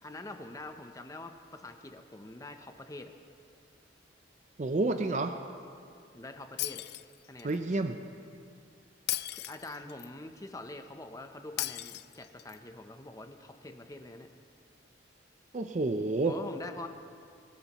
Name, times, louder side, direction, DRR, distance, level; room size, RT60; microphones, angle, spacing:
voice 1, 0.0-3.1 6.1-6.8 7.3-7.6 9.3-14.3 16.2-16.9, left 2 dB, 20° left, 6 dB, 0.6 m, -45 dB
voice 2, 4.6-5.3 7.4-8.0 15.5-16.3, right 2 dB, 40° right, 7 dB, 0.5 m, -29 dB
Shatter, 6.6-7.6 9.1-10.1 11.6-12.6, left 15 dB, 55° left, 0.4 m, -36 dB
24.5 x 12.5 x 3.0 m, 2.3 s
head